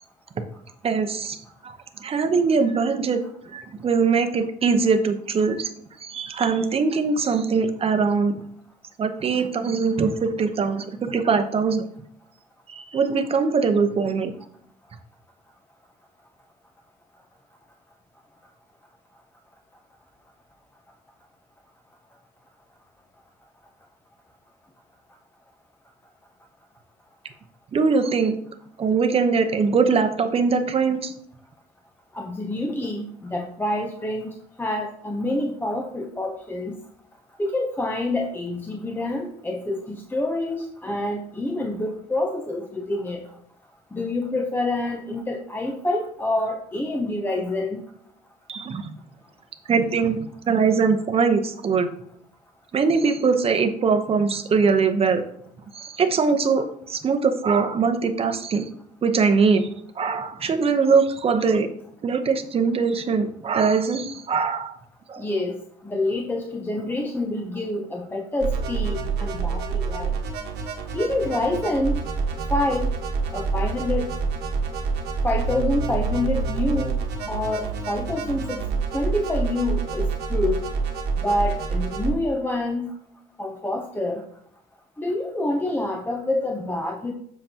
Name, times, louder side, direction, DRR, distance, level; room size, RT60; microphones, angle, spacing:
voice 1, 0.8-1.4 1.6-3.2 3.5-5.7 6.0-8.4 9.0-11.8 12.7-14.3 27.7-28.4 28.8-31.1 48.5-48.8 49.7-50.2 50.5-51.9 52.7-55.2 55.7-58.7 59.0-59.7 60.0-61.7 62.0-64.8 65.1-65.3, right 5 dB, 35° right, 8 dB, 0.8 m, -22 dB
voice 2, 32.1-36.8 37.4-43.2 43.9-47.8 65.2-65.6 65.8-70.1 70.9-72.0 72.5-72.9 73.3-74.1 75.2-77.0 77.3-78.6 78.9-80.6 81.2-82.9 83.4-84.2 85.0-87.1, left 2 dB, 10° left, 3 dB, 0.7 m, -27 dB
sound 1, 68.4-82.1, right 4 dB, 80° right, 1.3 m, -27 dB
7.8 x 5.9 x 2.9 m, 0.68 s
cardioid pair, 110°, 17 cm